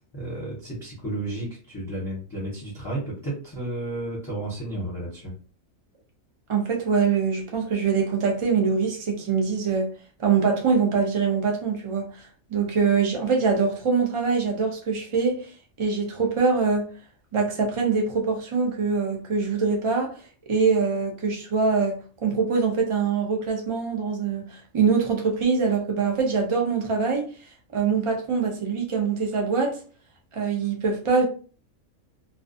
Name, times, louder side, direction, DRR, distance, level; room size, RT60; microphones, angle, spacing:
voice 1, 0.1-5.3, right 1 dB, 20° left, -6 dB, 0.7 m, -32 dB
voice 2, 6.5-9.9 10.2-12.2 12.5-15.5 15.8-16.9 17.3-20.1 20.5-27.3 27.7-29.8 30.3-31.3, right 5 dB, 55° right, 2 dB, 0.3 m, -23 dB
2.4 x 2.3 x 2.5 m, 0.38 s
omnidirectional pair, 1.4 m